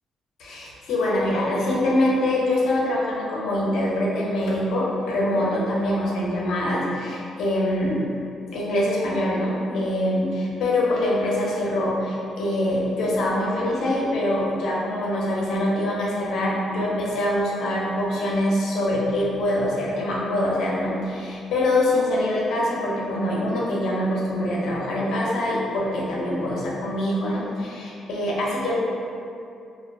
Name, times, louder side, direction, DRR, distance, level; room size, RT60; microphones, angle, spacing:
voice 1, 0.4-8.1 8.5-28.7, left 1 dB, 80° left, -5 dB, 0.5 m, -24 dB
2.3 x 2.3 x 2.3 m, 2.6 s
cardioid pair, 90°, 0 cm